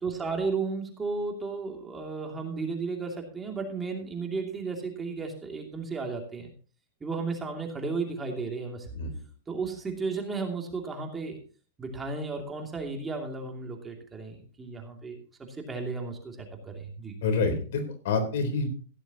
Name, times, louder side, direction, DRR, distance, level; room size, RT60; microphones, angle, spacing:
voice 1, 0.0-6.5 7.0-8.9 9.5-11.4 11.8-17.2, right 4 dB, 15° right, 2 dB, 2.7 m, -34 dB
voice 2, 17.2-18.7, left 4 dB, 65° left, 7 dB, 3.8 m, -27 dB
16.0 x 11.0 x 3.0 m, 0.39 s
hypercardioid pair, 140°, 0 cm